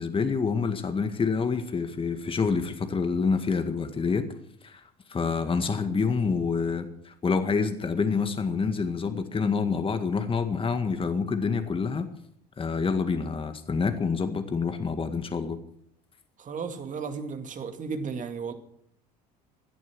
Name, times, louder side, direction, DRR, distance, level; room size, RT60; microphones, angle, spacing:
voice 1, 0.0-4.3 4.6-4.8 5.1-12.1 12.6-15.6, left 5 dB, 25° left, 8 dB, 1.8 m, -27 dB
voice 2, 16.4-18.5, right 5 dB, 40° right, 7 dB, 2.3 m, -34 dB
17.0 x 11.0 x 6.2 m, 0.67 s
hypercardioid pair, 65°, 21 cm